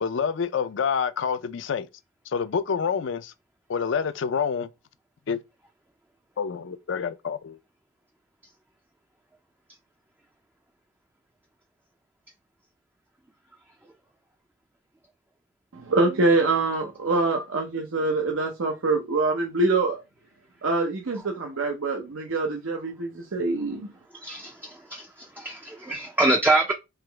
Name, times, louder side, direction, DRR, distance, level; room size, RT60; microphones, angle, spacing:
voice 1, 0.0-1.9 2.3-3.3 3.7-4.7 5.3-5.4 6.4-7.6, left 6 dB, 60° left, 0.4 m, -27 dB
voice 2, 15.7-20.0 20.6-23.9, right 3 dB, 80° right, 0.7 m, -25 dB
voice 3, 24.2-25.1 25.4-26.7, right 2 dB, 10° right, 0.4 m, -24 dB
3.6 x 2.9 x 3.3 m
head